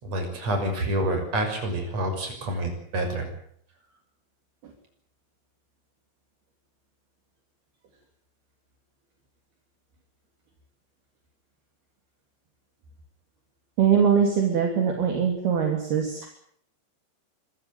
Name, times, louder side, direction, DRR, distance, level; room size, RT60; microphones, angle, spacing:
voice 1, 0.0-3.3, right 1 dB, 35° right, 5 dB, 7.3 m, -28 dB
voice 2, 13.8-16.3, right 7 dB, 60° right, 3 dB, 4.8 m, -22 dB
26.0 x 15.5 x 9.4 m, 0.65 s
omnidirectional pair, 5.3 m